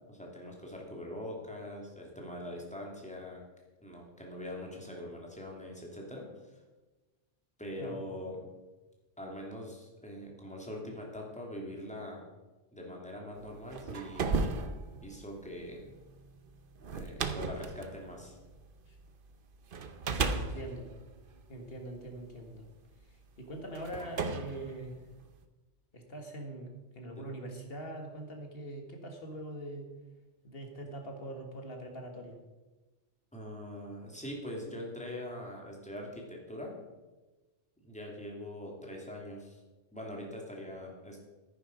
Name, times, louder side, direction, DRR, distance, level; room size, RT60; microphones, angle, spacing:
voice 1, 0.1-3.4 3.8-6.3 7.6-8.5 9.2-12.3 12.7-14.4 15.0-15.9 16.9-18.4 27.2-27.3 33.3-36.7 37.8-39.6 39.9-41.2, left 1 dB, 5° left, -1 dB, 2.4 m, -43 dB
sound 1, 13.5-19.1 19.7-22.2 23.0-23.1 23.7-25.4, right 4 dB, 55° right, 1.0 m, -36 dB
voice 2, 20.3-20.9 21.5-22.7 23.1-25.0 25.9-29.9 30.4-32.4, right 1 dB, 55° left, 3 dB, 1.9 m, -43 dB
10.5 x 9.8 x 5.1 m, 1.2 s
omnidirectional pair, 1.2 m